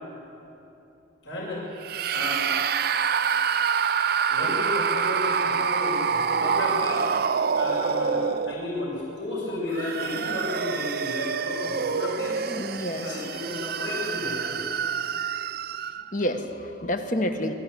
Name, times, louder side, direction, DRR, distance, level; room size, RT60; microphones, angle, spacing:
voice 1, 1.2-1.7 2.1-2.5 4.3-7.0 7.5-12.4 13.0-14.6, left 1 dB, 75° left, -9 dB, 6.7 m, -32 dB
sound 1, 1.8-8.9 9.6-16.1, right 6 dB, 55° right, 0.5 m, -27 dB
voice 2, 12.5-13.2 16.1-17.5, left 1 dB, 45° left, 6 dB, 1.4 m, -29 dB
23.5 x 14.5 x 8.6 m, 2.9 s
head